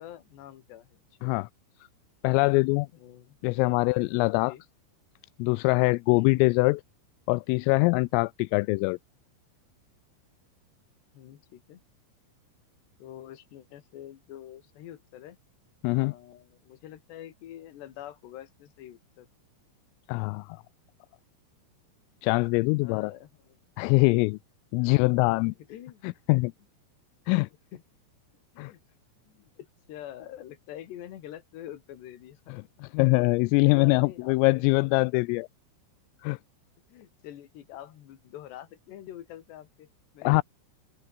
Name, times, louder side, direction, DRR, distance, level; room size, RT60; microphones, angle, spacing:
voice 1, 0.0-1.3 2.9-3.8 4.4-4.6 6.1-6.5 11.1-11.8 13.0-15.4 15.9-19.3 22.8-23.6 24.8-26.0 26.3-26.4 27.7-27.8 28.5-28.8 29.3-32.6 33.3-34.9 36.9-39.9 40.1-40.4, left 12 dB, 60° left, 4.0 m, -46 dB
voice 2, 2.2-2.9 3.4-4.5 5.4-6.8 7.3-9.0 15.8-16.1 20.1-20.6 22.2-23.1 23.8-24.4 24.7-25.5 26.0-26.5 27.3-27.5 28.6-28.7 32.5-35.5 36.2-36.4 40.2-40.4, left 26 dB, 85° left, 3.2 m, -23 dB
omnidirectional pair, 5.9 m